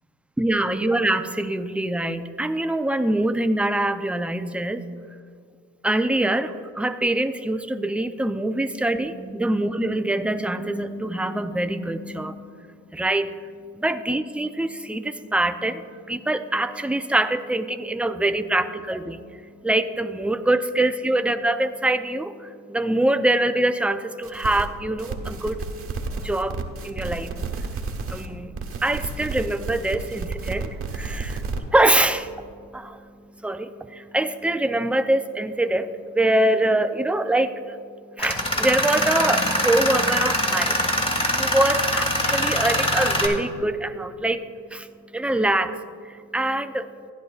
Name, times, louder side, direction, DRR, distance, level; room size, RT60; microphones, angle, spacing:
voice 1, 0.4-4.8 5.8-47.1, right 1 dB, 5° right, 9 dB, 0.4 m, -25 dB
sound 1, 24.2-24.7 25.0-28.3 28.5-31.6, right 4 dB, 50° right, 1.2 m, -31 dB
Tools, 38.2-43.3, left 1 dB, 20° left, 1.8 m, -23 dB
15.0 x 10.5 x 2.4 m, 2.2 s
cardioid pair, 90°, 30 cm